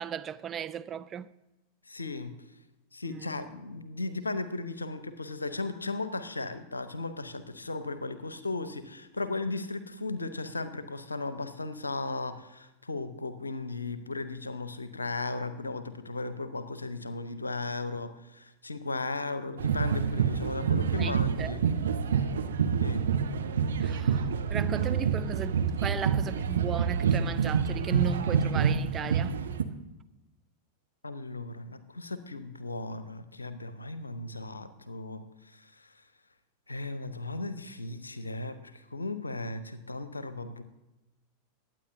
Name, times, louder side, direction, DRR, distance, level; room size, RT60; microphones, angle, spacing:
voice 1, 0.0-1.3 3.1-3.5 20.9-21.6 23.8-29.4, right 7 dB, 25° right, 0.4 m, -36 dB
voice 2, 1.9-2.3 2.9-21.6 22.2-22.3 22.8-23.1 31.0-35.2 35.5-35.9 36.7-40.6, left 3 dB, 80° left, 0.8 m, -36 dB
sound 1, 19.6-29.6, right 6 dB, 65° right, 0.7 m, -27 dB
21.0 x 8.9 x 2.7 m
figure-of-eight pair, 90°, 0 cm